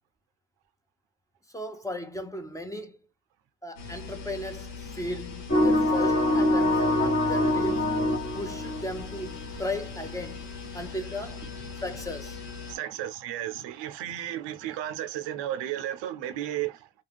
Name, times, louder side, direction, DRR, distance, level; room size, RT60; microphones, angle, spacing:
voice 1, 1.5-3.0 3.6-8.0 8.3-10.5 10.7-11.4 11.8-12.4, left 1 dB, 10° left, 0.7 m, -36 dB
sound 1, 3.8-12.8, left 5 dB, 75° left, 1.1 m, -40 dB
sound 2, 5.5-9.4, left 1 dB, 30° left, 1.1 m, -24 dB
voice 2, 12.7-17.0, right 12 dB, 90° right, 0.6 m, -34 dB
2.4 x 2.3 x 3.2 m
supercardioid pair, 60°, 41 cm